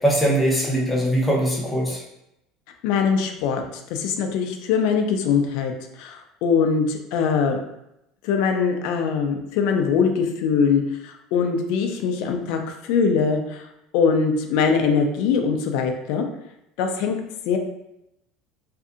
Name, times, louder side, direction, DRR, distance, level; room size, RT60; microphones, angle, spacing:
voice 1, 0.0-2.0, right 1 dB, 5° left, -4 dB, 0.6 m, -21 dB
voice 2, 2.8-3.6 3.9-5.7 6.0-7.6 8.2-13.7 13.9-16.3 16.8-17.2 17.5-17.6, left 6 dB, 65° left, 4 dB, 0.3 m, -22 dB
2.6 x 2.4 x 2.4 m, 0.84 s
cardioid pair, 165°, 0 cm